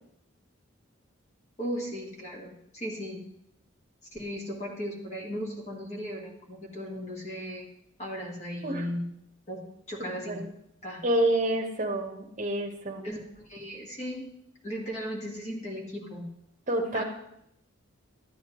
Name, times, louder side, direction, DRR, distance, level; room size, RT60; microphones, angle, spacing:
voice 1, 1.6-3.2 4.1-7.7 8.0-9.0 9.5-10.4 10.8-11.0 13.0-14.3 14.6-16.2 16.9-17.0, equal, 35° left, -1 dB, 1.7 m, -36 dB
voice 2, 10.0-10.5 11.0-13.1 16.7-17.0, right 1 dB, 35° right, 3 dB, 1.0 m, -28 dB
13.0 x 9.3 x 3.0 m, 0.77 s
head